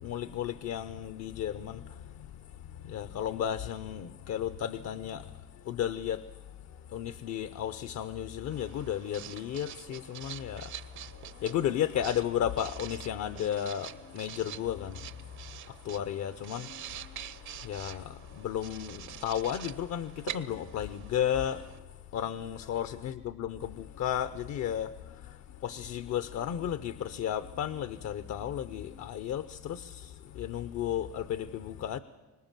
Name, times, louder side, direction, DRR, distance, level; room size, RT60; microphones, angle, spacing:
voice 1, 0.0-2.3 2.8-5.3 5.6-6.3 6.9-10.7 11.1-15.1 15.7-17.3 17.6-21.8 22.1-32.0, left 10 dB, 65° left, 0.8 m, -34 dB
Writing, 8.5-21.8, right 11 dB, 70° right, 1.0 m, -46 dB
25.5 x 19.0 x 7.5 m
cardioid pair, 95°, 30 cm